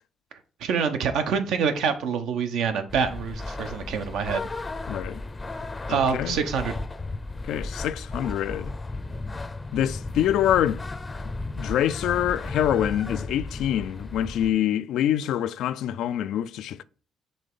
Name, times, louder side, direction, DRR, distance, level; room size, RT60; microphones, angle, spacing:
voice 1, 0.6-4.5 5.9-6.8, right 6 dB, 85° right, 0.9 m, -26 dB
sound 1, 2.9-14.5, left 2 dB, 25° left, 0.5 m, -35 dB
voice 2, 4.9-5.2 5.9-6.4 7.4-8.7 9.7-10.8 11.6-16.8, left 11 dB, 85° left, 0.3 m, -25 dB
5.4 x 3.3 x 5.4 m
cardioid pair, 90°, 0 cm